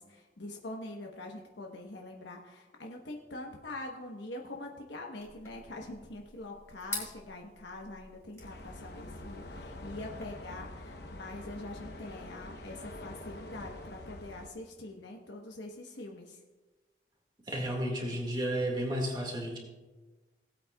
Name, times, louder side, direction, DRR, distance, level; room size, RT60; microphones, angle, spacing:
voice 1, 0.0-16.4, left 2 dB, 90° left, 1 dB, 1.1 m, -44 dB
sound 1, 5.2-10.2, left 2 dB, 15° left, 2.8 m, -47 dB
sound 2, 8.4-14.5, left 1 dB, 65° left, 0.9 m, -45 dB
voice 2, 17.5-19.6, right 1 dB, 25° right, 1 dB, 1.9 m, -32 dB
18.0 x 8.4 x 2.3 m, 1.2 s
head